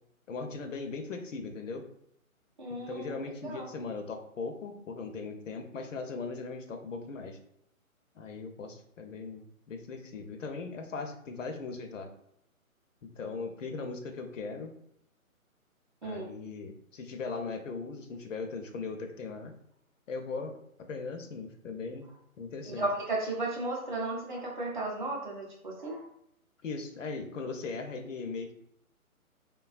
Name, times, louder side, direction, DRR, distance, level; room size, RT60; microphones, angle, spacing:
voice 1, 0.3-1.8 2.9-7.4 8.1-12.1 13.2-14.7 16.0-19.5 20.1-20.5 20.9-22.1 22.4-22.9 26.6-28.5, left 4 dB, 60° left, 5 dB, 0.5 m, -39 dB
voice 2, 2.6-3.1 3.4-3.7 16.0-16.2 22.7-26.0, right 2 dB, 35° right, -2 dB, 0.6 m, -34 dB
3.1 x 2.2 x 2.4 m, 0.74 s
hypercardioid pair, 155°, 43 cm